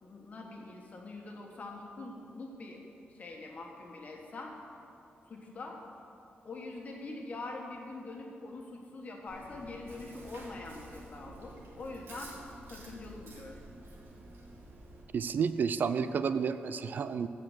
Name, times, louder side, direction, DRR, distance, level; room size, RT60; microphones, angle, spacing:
voice 1, 0.0-2.8 3.1-4.5 5.3-5.8 6.4-12.3 12.7-13.6, left 2 dB, 40° left, 1 dB, 1.5 m, -44 dB
Chewing mastication, 9.3-15.0, right 2 dB, 80° right, 1.9 m, -50 dB
voice 2, 15.1-17.3, right 6 dB, 50° right, 12 dB, 0.3 m, -31 dB
14.5 x 5.0 x 7.4 m, 2.7 s
wide cardioid pair, 160°, 4 cm